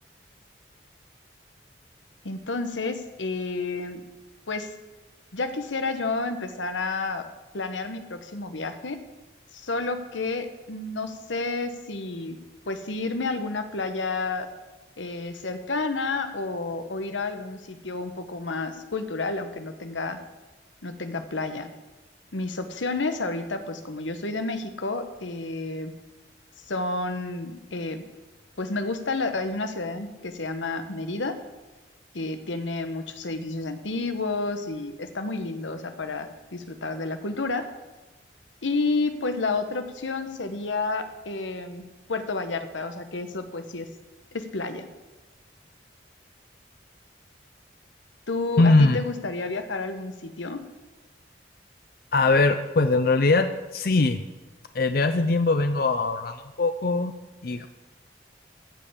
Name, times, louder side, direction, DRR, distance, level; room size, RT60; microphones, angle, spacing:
voice 1, 2.2-4.0 4.5-4.7 5.3-7.2 7.5-9.0 9.5-12.4 12.7-14.5 15.0-20.2 20.8-21.7 22.3-25.9 26.7-28.0 28.6-31.3 32.1-37.7 38.6-41.8 42.1-43.9 44.3-44.8 48.3-50.6, left 3 dB, 90° left, 8 dB, 1.1 m, -30 dB
voice 2, 48.6-49.0 52.1-54.2 54.7-57.1 57.4-57.7, left 3 dB, 50° left, 9 dB, 0.5 m, -21 dB
15.0 x 5.5 x 8.3 m, 1.1 s
head